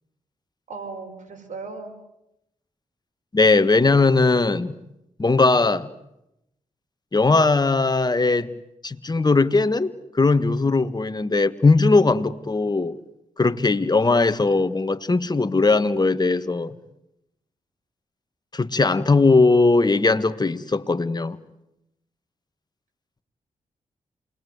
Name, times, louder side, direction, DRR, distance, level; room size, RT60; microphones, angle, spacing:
voice 1, 0.7-1.9, right 4 dB, 70° right, 6.2 m, -36 dB
voice 2, 3.3-4.7 5.2-5.9 7.1-8.5 8.8-13.0 13.4-16.7 18.5-21.4, left 3 dB, 30° left, 1.7 m, -19 dB
28.0 x 21.5 x 9.6 m
cardioid pair, 50°, 13 cm